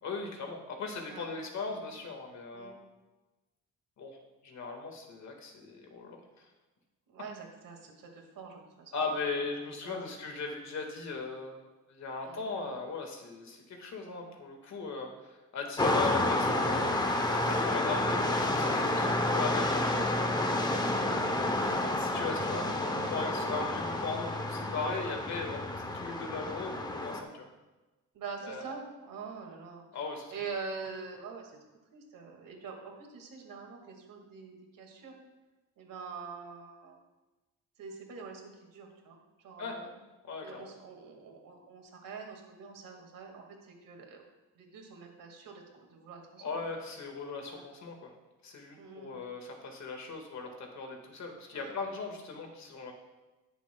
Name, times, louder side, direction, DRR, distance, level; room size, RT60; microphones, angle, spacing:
voice 1, 0.0-2.7 4.0-4.2 4.4-6.5 8.9-11.6 11.9-19.1 19.3-21.4 21.9-27.5 28.4-28.7 29.9-30.3 39.6-39.8 40.3-40.7 46.4-48.1 48.4-52.9, left 4 dB, 55° left, 3 dB, 1.7 m, -38 dB
voice 2, 7.1-8.9 9.8-10.1 12.2-12.5 18.9-19.2 22.2-22.9 28.1-29.9 30.3-31.6 31.9-35.1 35.8-37.0 37.8-39.9 40.4-44.2 44.5-46.6 47.5-47.6 48.8-49.2 51.5-51.7, right 5 dB, 80° right, 2 dB, 2.0 m, -45 dB
sound 1, 15.8-27.2, left 1 dB, 15° left, 0.7 m, -30 dB
19.5 x 7.1 x 2.3 m, 1.1 s
wide cardioid pair, 170°, 32 cm